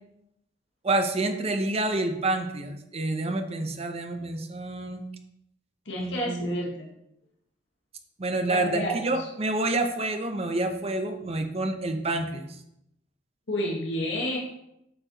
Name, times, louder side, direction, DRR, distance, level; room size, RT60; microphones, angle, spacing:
voice 1, 0.8-5.0 6.0-6.7 8.2-12.5, right 2 dB, 35° right, 6 dB, 0.7 m, -28 dB
voice 2, 5.8-6.7 8.5-9.3 13.5-14.4, equal, 85° left, -1 dB, 1.5 m, -30 dB
7.7 x 4.6 x 4.0 m, 0.81 s
head